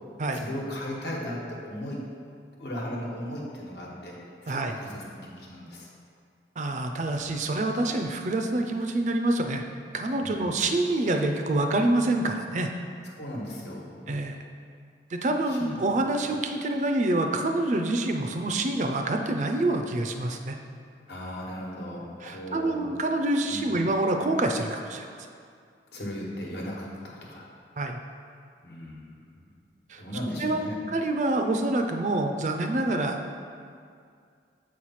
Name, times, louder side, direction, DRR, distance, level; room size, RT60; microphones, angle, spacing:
voice 1, 0.3-2.0 2.6-4.2 4.4-5.9 10.2-10.5 13.2-13.9 15.5-15.8 21.1-22.9 23.5-23.8 25.9-27.5 28.6-29.4 30.0-30.7, equal, 75° left, -3 dB, 1.2 m, -36 dB
voice 2, 6.6-9.6 9.9-12.7 14.1-14.4 15.1-20.6 22.2-25.1 27.8-28.0 29.9-30.0 30.4-30.6 30.9-33.2, right 2 dB, 40° right, 5 dB, 0.4 m, -26 dB
7.3 x 3.1 x 5.7 m, 2.2 s
head